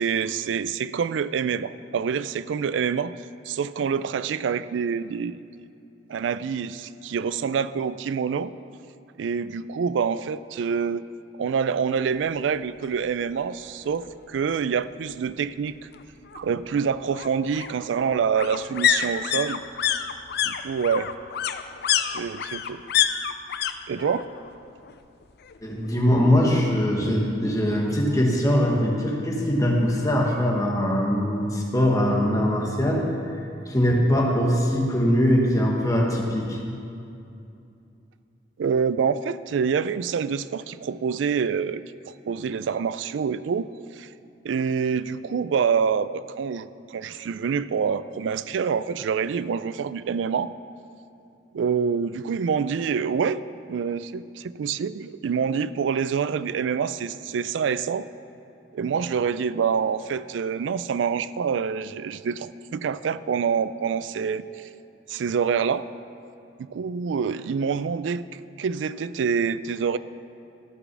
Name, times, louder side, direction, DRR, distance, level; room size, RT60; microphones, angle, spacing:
voice 1, 0.0-3.1 3.5-5.7 6.1-8.5 9.2-11.0 11.4-15.8 16.3-19.6 20.4-21.1 22.1-22.8 23.9-24.2 38.6-43.7 44.0-44.1 44.4-50.5 51.5-53.4 53.7-58.1 58.7-64.7 65.1-65.8 66.6-70.0, right 6 dB, 90° right, 15 dB, 0.3 m, -26 dB
sound 1, 12.8-12.9 13.3-13.4 13.6-14.6 15.9-23.7 24.0-24.6 24.8-25.9 26.2-26.3, left 9 dB, 60° left, 0.5 m, -27 dB
voice 2, 25.6-33.3 33.7-36.6, equal, 20° left, -2 dB, 1.5 m, -22 dB
13.5 x 6.0 x 6.1 m, 2.6 s
head